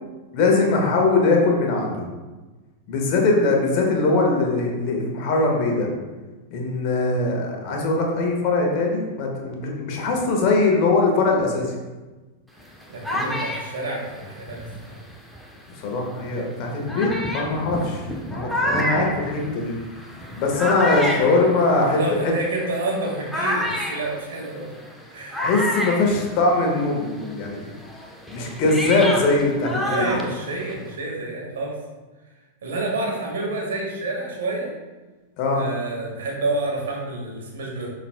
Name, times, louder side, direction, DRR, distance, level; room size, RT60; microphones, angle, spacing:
voice 1, 0.3-2.0 2.9-5.9 6.5-11.7 13.1-13.3 15.8-19.7 20.4-22.3 25.4-27.7 28.3-30.0 35.4-35.6, left 3 dB, 45° left, 0 dB, 1.5 m, -21 dB
sound 1, 12.6-15.6 16.3-16.4 16.9-26.9 27.2-30.9, left 1 dB, ahead, 0.9 m, -29 dB
voice 2, 12.9-14.9 21.9-24.7 25.1-25.4 29.0-29.1 29.8-31.8 32.6-34.7 35.5-37.9, right 2 dB, 60° right, -2 dB, 1.7 m, -29 dB
11.5 x 4.1 x 2.2 m, 1.2 s
figure-of-eight pair, 90°, 0 cm